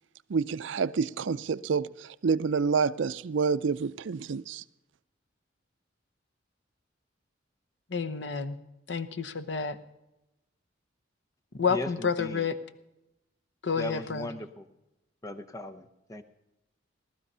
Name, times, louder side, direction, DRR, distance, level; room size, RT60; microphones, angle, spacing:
voice 1, 0.3-4.6, right 5 dB, 70° right, 0.5 m, -28 dB
voice 2, 7.9-8.6 8.9-9.8 11.6-12.5 13.6-14.3, left 5 dB, 60° left, 0.8 m, -29 dB
voice 3, 11.7-12.5 13.8-14.6 15.2-15.8 16.1-16.2, left 2 dB, 15° left, 0.7 m, -38 dB
18.5 x 12.5 x 5.5 m
head